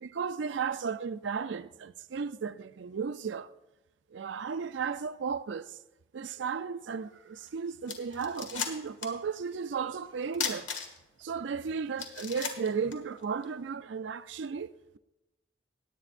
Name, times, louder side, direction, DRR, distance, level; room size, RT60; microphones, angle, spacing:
voice 1, 0.0-3.5 4.1-5.8 6.1-10.7 11.2-15.0, right 6 dB, 70° right, 0.4 m, -35 dB
sound 1, 7.5-7.6 7.9-9.2 9.5-9.6 10.3-11.2 11.6-11.7 12.0-13.5, left 6 dB, 90° left, 1.5 m, -36 dB
18.5 x 9.0 x 2.5 m
head